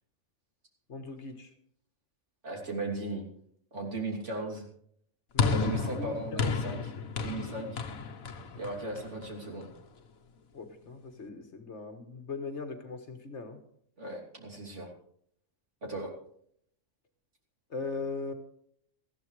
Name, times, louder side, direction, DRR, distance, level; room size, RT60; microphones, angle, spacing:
voice 1, 0.9-1.5 3.8-3.9 5.3-6.6 7.2-7.3 10.5-13.6 17.7-18.3, left 4 dB, 55° left, 7 dB, 1.7 m, -39 dB
voice 2, 2.4-3.2 3.7-4.7 5.5-7.8 8.5-9.7 14.0-14.9 15.8-16.2, right 2 dB, 60° right, -1 dB, 3.4 m, -37 dB
sound 1, 5.4-9.8, left 5 dB, 80° left, 1.5 m, -32 dB
19.0 x 14.5 x 3.3 m, 0.67 s
omnidirectional pair, 1.4 m